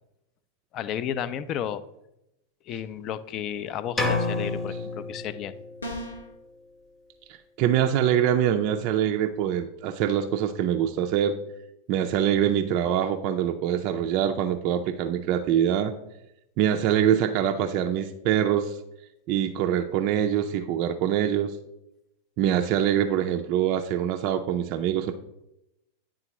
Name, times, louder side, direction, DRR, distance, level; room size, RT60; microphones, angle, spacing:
voice 1, 0.7-1.8 2.7-5.5, left 9 dB, 35° left, 13 dB, 0.4 m, -32 dB
sound 1, 4.0-5.9, left 3 dB, 20° left, 0.9 m, -29 dB
sound 2, 5.8-6.3, equal, 75° left, 0.9 m, -35 dB
voice 2, 7.6-11.3 11.9-15.9 16.6-18.8 19.3-21.5 22.4-25.1, right 10 dB, 40° right, 5 dB, 0.4 m, -24 dB
9.8 x 3.7 x 2.9 m, 0.86 s
figure-of-eight pair, 90°, 0 cm